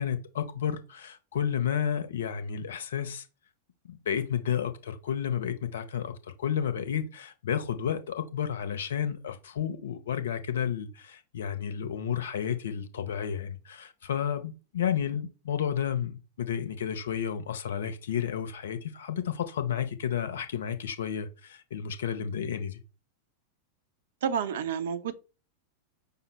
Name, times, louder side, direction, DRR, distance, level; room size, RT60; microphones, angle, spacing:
voice 1, 0.0-3.3 3.9-6.1 6.4-22.8, left 8 dB, 60° left, 0.6 m, -31 dB
voice 2, 24.2-25.1, right 7 dB, 60° right, 0.6 m, -29 dB
5.3 x 2.1 x 4.1 m
figure-of-eight pair, 90°, 0 cm